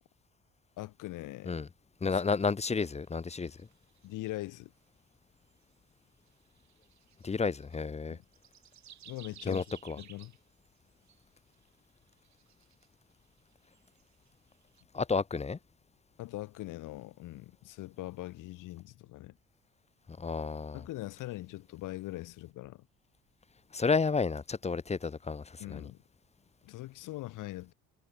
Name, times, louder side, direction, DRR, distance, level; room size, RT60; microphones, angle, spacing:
voice 1, 0.8-1.6 2.1-2.2 4.0-4.7 8.1-8.2 9.1-9.6 10.0-10.3 16.2-19.3 20.7-22.8 25.6-26.0 26.6-27.7, left 17 dB, 65° left, 1.8 m, -42 dB
voice 2, 2.0-3.5 7.2-8.2 9.5-10.0 14.9-15.6 20.2-20.8 23.7-25.9, left 4 dB, 20° left, 0.8 m, -31 dB
sound 1, 3.1-4.8 5.4-5.8 6.3-7.9 8.2-14.8, right 10 dB, 55° right, 6.1 m, -58 dB
hypercardioid pair, 50°, 34 cm